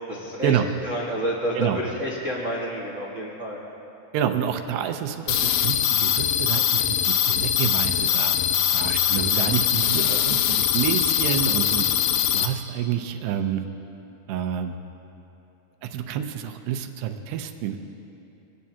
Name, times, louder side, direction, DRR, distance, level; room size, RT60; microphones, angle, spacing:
voice 1, 0.1-0.5 0.8-3.6, equal, 60° right, -4 dB, 0.8 m, -29 dB
voice 2, 4.1-8.4 8.7-11.9 12.3-13.6 14.3-14.7 15.8-17.8, right 9 dB, 90° right, 6 dB, 2.9 m, -28 dB
sound 1, 5.3-12.5, left 10 dB, 80° left, 2.6 m, -22 dB
25.0 x 18.0 x 2.9 m, 2.9 s
omnidirectional pair, 4.6 m